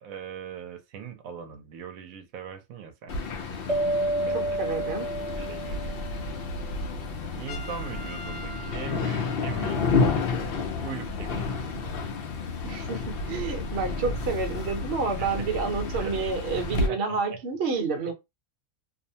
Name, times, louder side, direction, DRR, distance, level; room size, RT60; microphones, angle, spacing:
voice 1, 0.0-3.1 4.3-5.8 7.3-9.8 10.8-11.5 15.2-15.5 15.9-16.1 16.7-17.4, right 7 dB, 85° right, 1.0 m, -40 dB
sound 1, 3.1-16.9, left 4 dB, 60° left, 0.6 m, -30 dB
sound 2, 3.7-6.7, right 1 dB, 35° right, 0.5 m, -30 dB
voice 2, 4.3-5.1 12.6-18.1, right 4 dB, 55° right, 0.9 m, -29 dB
Trumpet, 7.5-10.1, left 1 dB, 75° left, 1.0 m, -44 dB
2.6 x 2.1 x 2.6 m
omnidirectional pair, 1.4 m